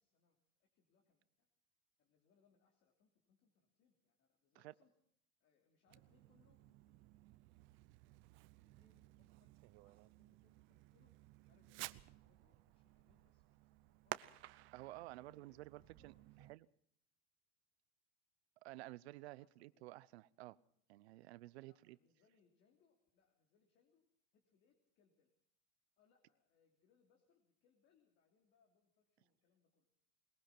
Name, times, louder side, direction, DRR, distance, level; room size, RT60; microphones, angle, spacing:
voice 1, 0.0-1.5 2.0-4.9 5.4-7.6 8.3-11.1 11.4-14.3 14.9-16.6 19.4-19.9 21.6-24.0 24.3-25.3 26.0-29.9, left 6 dB, 35° left, 2 dB, 3.2 m, -78 dB
Fireworks, 5.9-16.6, right 19 dB, 40° right, 0.7 m, -55 dB
voice 2, 14.7-16.1 16.5-16.7 18.6-20.6 20.9-22.0, right 18 dB, 80° right, 19 dB, 0.9 m, -53 dB
21.5 x 21.0 x 5.9 m, 0.66 s
supercardioid pair, 160°, 32 cm